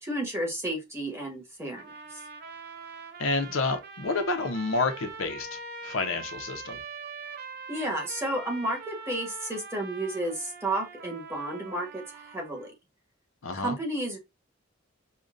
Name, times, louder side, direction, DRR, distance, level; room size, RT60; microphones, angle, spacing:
voice 1, 0.0-1.9 7.7-12.7 13.5-14.2, right 1 dB, 15° right, 1.2 m, -32 dB
sound 1, 1.7-12.7, right 4 dB, 50° right, 0.6 m, -43 dB
voice 2, 3.2-6.8 13.4-13.8, left 3 dB, 70° left, 0.6 m, -29 dB
5.2 x 2.2 x 2.4 m
head